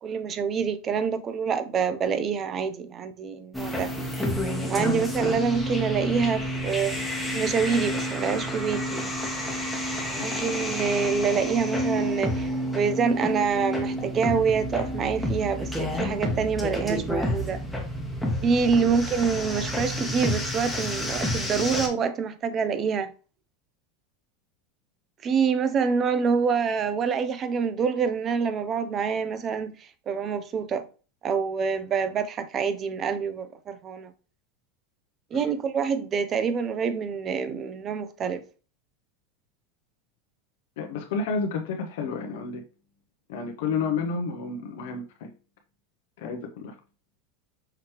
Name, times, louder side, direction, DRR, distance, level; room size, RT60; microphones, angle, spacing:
voice 1, 0.0-3.9 4.7-7.0 7.3-9.0 9.9-17.6 18.4-23.1 25.2-29.7 30.1-30.8 31.2-34.1 35.3-38.4, right 6 dB, 25° right, 0.5 m, -26 dB
sound 1, 3.5-21.9, equal, ahead, 0.9 m, -29 dB
voice 2, 40.8-42.6 43.3-45.3 46.2-46.8, left 5 dB, 70° left, 0.7 m, -31 dB
5.8 x 3.1 x 2.9 m
supercardioid pair, 150°, 0 cm